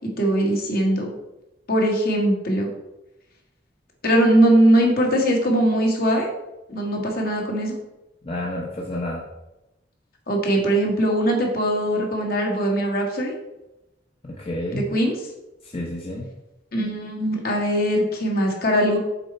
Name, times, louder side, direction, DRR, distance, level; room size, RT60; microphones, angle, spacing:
voice 1, 0.0-1.1 1.7-2.7 4.0-6.3 6.7-7.8 10.3-13.4 14.7-15.1 16.7-19.0, right 1 dB, 55° left, 0 dB, 1.6 m, -21 dB
voice 2, 8.2-9.2 14.2-14.9 15.6-16.3, left 1 dB, 30° left, -2 dB, 0.9 m, -30 dB
7.0 x 4.4 x 4.2 m, 0.94 s
head